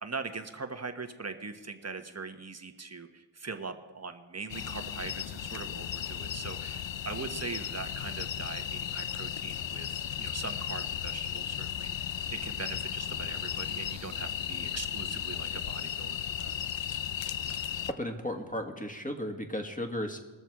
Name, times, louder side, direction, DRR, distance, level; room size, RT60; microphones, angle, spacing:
voice 1, 0.0-16.6, right 4 dB, 30° right, 6 dB, 1.2 m, -41 dB
sound 1, 4.5-17.9, left 10 dB, 70° left, 0.6 m, -35 dB
voice 2, 18.0-20.2, left 1 dB, 15° left, 4 dB, 1.7 m, -35 dB
20.5 x 7.0 x 4.7 m, 1.3 s
wide cardioid pair, 60°, 48 cm